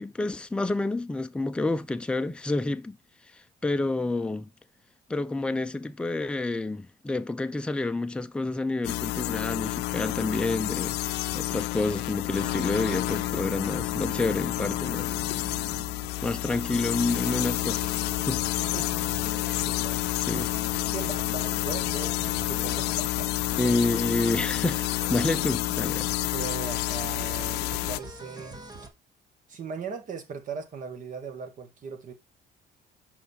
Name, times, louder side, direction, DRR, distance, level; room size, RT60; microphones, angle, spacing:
voice 1, 0.0-3.0 3.3-4.5 5.1-11.0 11.3-15.3 16.2-18.0 18.3-18.4 20.2-20.5 23.6-26.1, left 2 dB, 5° left, 0.5 m, -29 dB
sound 1, 8.8-28.0, left 18 dB, 80° left, 0.4 m, -29 dB
sound 2, 12.3-28.9, right 3 dB, 25° right, 1.6 m, -44 dB
voice 2, 19.6-20.5 20.9-23.3 23.6-23.7 26.3-28.6 29.5-32.1, right 6 dB, 50° right, 1.6 m, -39 dB
5.5 x 5.3 x 4.3 m
cardioid pair, 110°, 17 cm